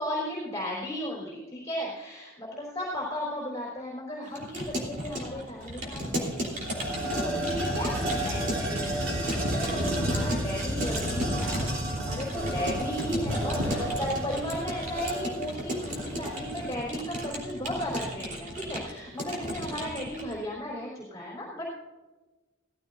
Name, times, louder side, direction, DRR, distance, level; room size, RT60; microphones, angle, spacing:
voice 1, 0.0-6.4 6.9-11.7 12.0-21.6, equal, 15° left, -6 dB, 3.8 m, -35 dB
Keyboard (musical) / Computer keyboard, 4.3-20.3, equal, 40° right, 3.4 m, -36 dB
sound 1, 5.6-5.7 6.0-16.7, right 1 dB, 65° right, 5.0 m, -31 dB
17.5 x 14.5 x 2.6 m, 1.2 s
head